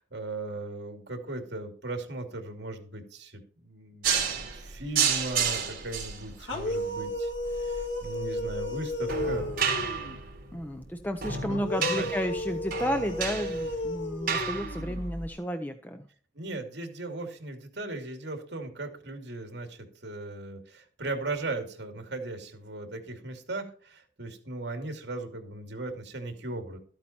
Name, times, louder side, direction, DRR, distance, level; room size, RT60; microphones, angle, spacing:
voice 1, 0.0-7.3 7.6-7.8 8.0-9.5 11.8-12.1 16.3-26.8, right 2 dB, 70° right, 4 dB, 2.7 m, -37 dB
sound 1, 4.0-15.3, right 6 dB, 50° right, 3.7 m, -32 dB
sound 2, 6.4-10.2 11.5-15.1, left 1 dB, 85° left, 2.4 m, -34 dB
voice 2, 10.5-16.0, equal, 10° left, 6 dB, 0.7 m, -32 dB
13.5 x 8.7 x 4.4 m, 0.44 s
head